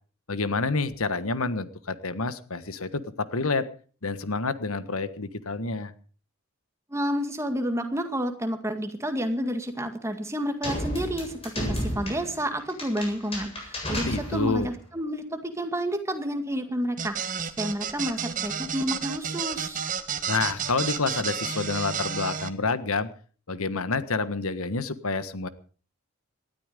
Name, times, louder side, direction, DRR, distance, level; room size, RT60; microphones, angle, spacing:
voice 1, 0.3-3.7 4.0-5.9 13.9-14.7 20.3-23.1 23.5-25.5, left 3 dB, 80° left, 13 dB, 1.4 m, -28 dB
voice 2, 6.9-19.8, equal, 15° right, 6 dB, 2.1 m, -30 dB
sound 1, 10.6-14.7, equal, 25° left, 7.7 m, -33 dB
sound 2, 17.0-22.5, right 7 dB, 35° right, 1.5 m, -31 dB
19.0 x 13.0 x 5.2 m, 0.41 s
head